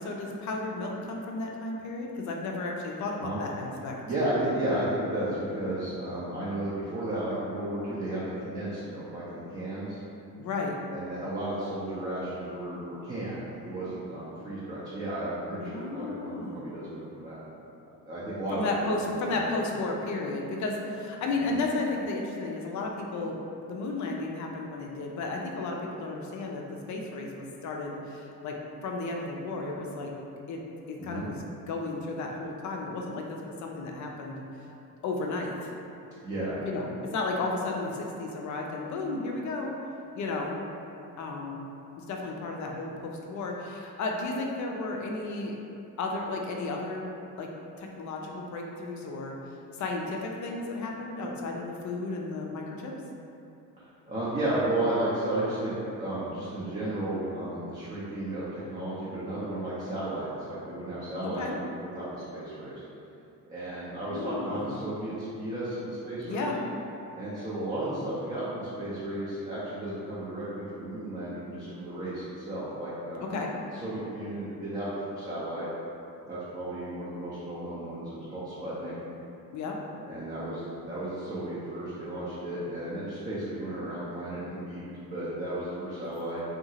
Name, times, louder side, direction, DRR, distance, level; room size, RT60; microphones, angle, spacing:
voice 1, 0.0-4.0 10.4-10.7 15.6-16.6 18.5-23.4 23.6-28.6 28.8-30.1 30.5-30.6 30.9-31.4 31.7-34.4 35.0-35.7 36.6-39.7 40.1-40.5 41.2-41.6 42.0-45.5 46.0-47.1 47.4-47.5 47.8-49.4 49.8-52.9 61.2-61.6 64.1-64.8 66.2-66.6 73.3-73.5 79.5-79.8, left 3 dB, 40° left, 0 dB, 0.4 m, -33 dB
voice 2, 4.1-10.0 10.9-17.4 18.1-19.0 19.3-19.7 21.3-21.4 31.0-31.3 36.2-36.6 54.1-61.6 61.9-62.8 63.5-66.5 67.2-73.4 73.7-75.7 76.3-78.9 80.1-84.8 85.1-86.4, right 1 dB, 15° right, -10 dB, 0.6 m, -33 dB
2.7 x 2.4 x 2.7 m, 2.8 s
hypercardioid pair, 50°, 47 cm